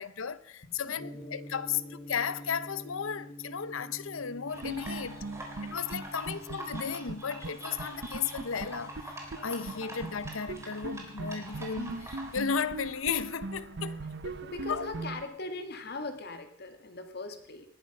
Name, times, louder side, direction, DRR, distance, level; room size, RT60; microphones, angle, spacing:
voice 1, 0.0-5.2 5.6-8.9 9.4-14.4 14.7-14.8, left 6 dB, 80° left, 0.8 m, -34 dB
Gong, 0.9-15.1, equal, 35° left, 3.1 m, -49 dB
sound 1, 4.5-12.4, right 1 dB, 15° right, 3.4 m, -45 dB
sound 2, 4.6-7.2 7.4-7.5 7.8-9.4 9.7-9.8 10.0-15.2, right 3 dB, 60° right, 0.7 m, -39 dB
voice 2, 5.9-6.2 9.3-9.5 11.4-11.5 14.3-17.7, left 2 dB, 50° left, 1.9 m, -40 dB
19.5 x 10.5 x 5.4 m
head